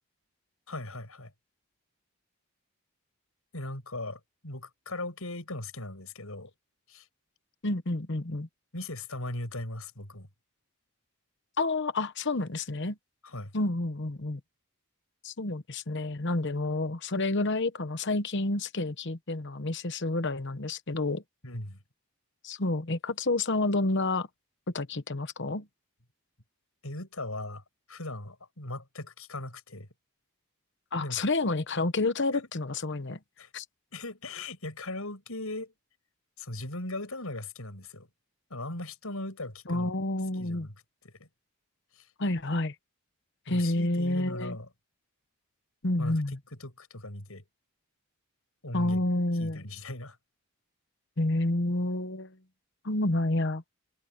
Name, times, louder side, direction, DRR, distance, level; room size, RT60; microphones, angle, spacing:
voice 1, 0.7-1.3 3.5-6.5 6.9-7.1 8.7-10.3 13.2-13.5 21.4-21.8 26.8-27.6 27.9-29.9 31.0-31.2 32.3-32.4 33.4-33.5 33.9-35.7 36.4-38.1 38.5-39.9 40.4-40.7 41.0-41.3 41.9-42.1 43.5-44.7 46.0-47.4 48.6-49.1 49.4-50.2, left 2 dB, 70° left, 6.6 m, -39 dB
voice 2, 7.6-8.5 11.6-13.0 13.5-14.4 15.2-21.2 22.4-24.3 24.7-25.7 30.9-33.2 33.5-33.6 39.7-40.7 42.2-42.7 43.5-44.6 45.8-46.4 48.7-49.6 51.2-52.4 52.8-53.6, left 2 dB, 50° left, 1.1 m, -29 dB
head